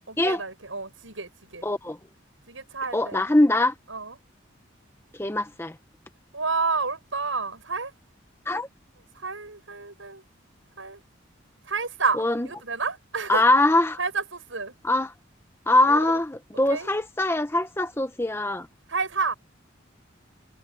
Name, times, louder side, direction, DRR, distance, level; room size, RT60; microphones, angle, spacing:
voice 1, 0.1-1.7 2.5-3.2 3.9-4.2 6.3-7.9 9.1-10.2 10.8-11.0 11.7-13.4 14.0-14.7 15.9-16.2 16.7-16.9 18.9-19.3, right 4 dB, 90° right, 7.9 m, -30 dB
voice 2, 1.6-2.0 2.9-3.7 5.2-5.7 8.5-8.7 12.2-12.5 13.3-14.0 14.8-15.1 15.7-18.7, left 2 dB, 15° left, 1.0 m, -22 dB
head